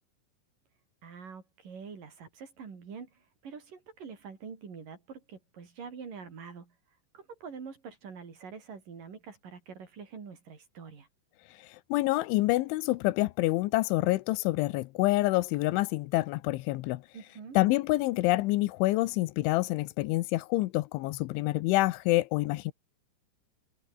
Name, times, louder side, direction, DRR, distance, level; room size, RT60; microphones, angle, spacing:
voice 1, 1.0-6.7 7.1-11.1 17.1-17.6, right 6 dB, 45° right, 5.2 m, -45 dB
voice 2, 11.9-17.0 17.6-22.7, left 19 dB, 85° left, 3.2 m, -27 dB
omnidirectional pair, 5.4 m